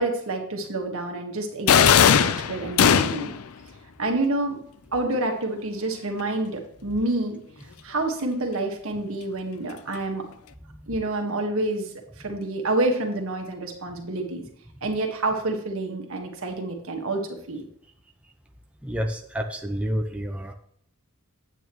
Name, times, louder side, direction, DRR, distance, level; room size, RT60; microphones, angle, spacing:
voice 1, 0.0-3.3 4.0-4.6 4.9-7.4 7.8-10.2 10.9-11.9 12.2-14.4 14.8-17.2 17.5-17.6, right 2 dB, 65° right, 3 dB, 1.6 m, -28 dB
sound 1, 1.7-3.4, left 8 dB, 70° left, 0.5 m, -18 dB
voice 2, 18.8-20.5, equal, 5° right, 2 dB, 0.5 m, -29 dB
8.9 x 8.7 x 3.1 m, 0.68 s
head